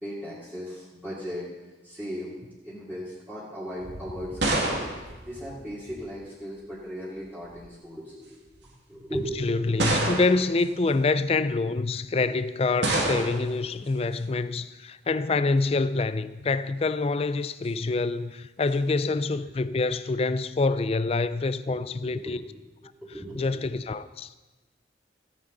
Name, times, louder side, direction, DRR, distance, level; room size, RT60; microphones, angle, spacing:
voice 1, 0.0-1.4 1.8-2.3 2.6-9.6 19.3-19.6 21.7-22.4 22.8-23.7, equal, 10° right, 2.7 m, -38 dB
sound 1, 3.8-6.1 7.2-7.6 8.5-8.6 9.8-10.6 12.8-13.6, right 2 dB, 70° right, 2.1 m, -28 dB
voice 2, 9.4-22.4 23.4-24.3, left 3 dB, 35° left, 0.4 m, -26 dB
16.0 x 9.4 x 4.0 m
head